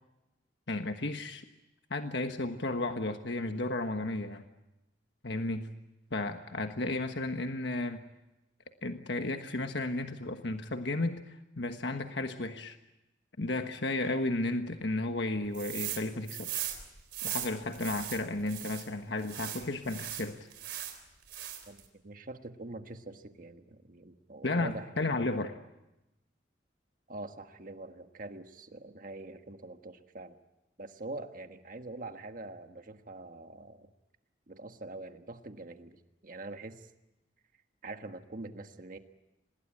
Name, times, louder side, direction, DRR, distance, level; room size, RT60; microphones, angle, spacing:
voice 1, 0.7-1.4 1.9-4.4 5.2-5.7 6.1-8.0 8.8-12.8 13.4-16.6 17.2-20.4 24.4-25.5, left 2 dB, 70° left, 6 dB, 1.4 m, -33 dB
sound 1, 15.5-16.0 16.3-18.9 19.2-21.0 21.3-21.8, right 12 dB, 65° right, 3.9 m, -38 dB
voice 2, 21.7-24.9 27.1-30.4 30.8-33.9 34.5-36.9 37.8-39.0, right 2 dB, 50° right, 7 dB, 1.5 m, -44 dB
26.5 x 20.5 x 8.9 m, 0.95 s
head